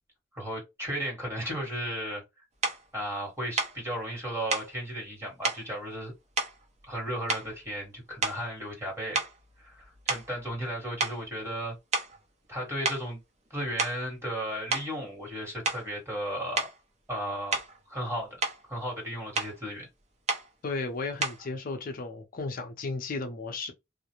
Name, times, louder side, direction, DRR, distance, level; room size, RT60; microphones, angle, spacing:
voice 1, 0.3-2.2 2.9-6.1 6.9-9.2 9.6-11.7 12.5-13.2 13.5-16.7 17.1-17.6 17.9-18.3 18.7-19.9, equal, 15° right, 1.4 m, -34 dB
sound 1, 2.6-2.8 3.6-3.8 4.5-4.7 5.4-5.7 6.4-7.0 7.3-7.7 8.2-8.6 9.1-10.7 11.0-11.2 11.9-12.2 12.9-13.1 13.6-14.1 14.7-14.9 15.7-15.9 16.6-16.8 17.5-17.8 18.2-18.6 19.4-19.6 20.3-20.5 21.2-21.5, right 3 dB, 35° right, 0.6 m, -31 dB
voice 2, 20.6-23.7, left 3 dB, 50° left, 0.5 m, -34 dB
2.4 x 2.0 x 2.9 m
head